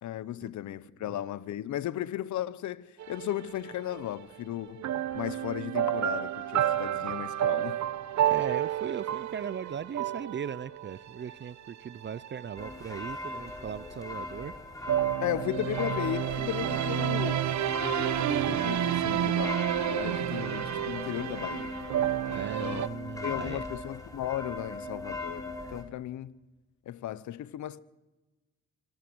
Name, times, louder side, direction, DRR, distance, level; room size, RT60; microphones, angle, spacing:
voice 1, 0.0-4.8 5.1-7.9 15.2-17.4 17.8-21.7 22.2-22.9 23.2-26.3 26.9-27.8, left 12 dB, 70° left, 1.0 m, -35 dB
sound 1, 3.0-4.0 4.8-12.9 14.9-22.9, right 11 dB, 70° right, 1.1 m, -30 dB
voice 2, 8.2-14.5 14.9-15.2 22.3-23.7, right 7 dB, 40° right, 0.6 m, -38 dB
sound 2, 12.6-25.8, left 2 dB, 10° left, 4.3 m, -39 dB
24.5 x 19.5 x 6.3 m
cardioid pair, 90°, 30 cm